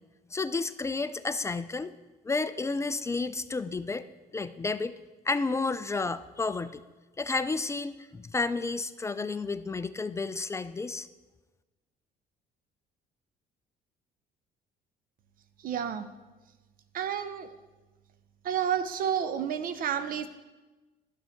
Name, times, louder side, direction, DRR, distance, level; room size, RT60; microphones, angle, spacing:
voice 1, 0.3-1.9 2.2-4.0 4.3-4.9 5.3-6.8 7.2-11.1, left 3 dB, 15° left, 13 dB, 0.3 m, -31 dB
voice 2, 15.6-16.1 16.9-17.5 18.4-20.3, right 8 dB, 55° right, 12 dB, 0.7 m, -30 dB
11.5 x 7.1 x 4.4 m, 1.2 s
cardioid pair, 110°, 17 cm